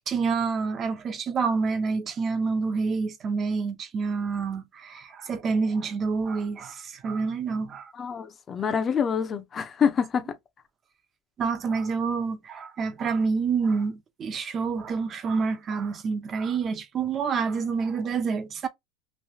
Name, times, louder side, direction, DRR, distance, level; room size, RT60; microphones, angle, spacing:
voice 1, 0.1-7.9 11.4-18.7, right 5 dB, 30° right, 0.7 m, -28 dB
voice 2, 7.9-10.3, left 7 dB, 25° left, 0.7 m, -26 dB
3.2 x 2.7 x 2.7 m
supercardioid pair, 125°, 0 cm